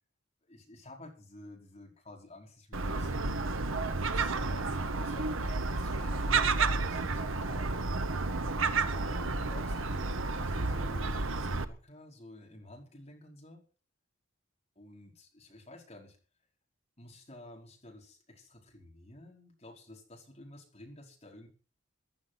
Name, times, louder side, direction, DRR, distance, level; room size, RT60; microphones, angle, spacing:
voice 1, 0.5-3.3 3.9-7.7 8.9-13.6 14.7-16.2 17.0-21.5, left 1 dB, 30° left, 0 dB, 5.0 m, -52 dB
Gull seagull, 2.7-11.6, right 3 dB, 80° right, 1.2 m, -31 dB
15.5 x 11.5 x 6.0 m, 0.38 s
head